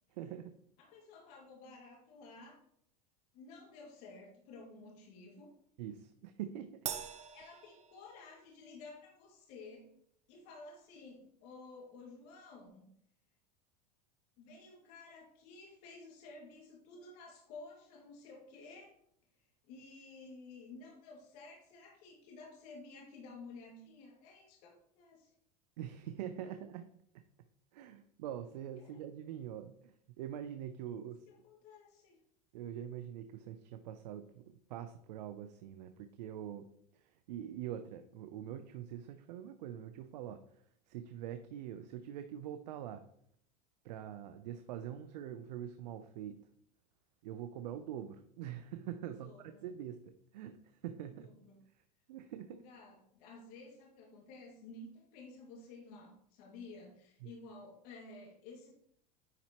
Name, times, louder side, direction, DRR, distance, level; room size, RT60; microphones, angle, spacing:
voice 1, 0.1-0.5 5.8-6.8 25.8-26.9 27.1-27.2 27.7-31.2 32.5-34.4 34.7-40.4 40.9-43.0 43.8-46.4 47.2-51.3 52.1-52.6 57.2-57.3, right 10 dB, 85° right, 9 dB, 0.6 m, -44 dB
voice 2, 0.8-2.6 3.3-5.5 7.3-10.0 10.3-12.8 14.4-18.9 19.7-25.3 26.4-26.5 28.8-29.0 31.0-32.2 49.2-49.6 51.1-51.6 52.5-58.7, left 3 dB, 65° left, -1 dB, 2.2 m, -53 dB
Crash cymbal, 6.9-8.5, right 9 dB, 35° right, 0.7 m, -43 dB
9.9 x 4.4 x 3.0 m, 0.68 s
supercardioid pair, 115°, 21 cm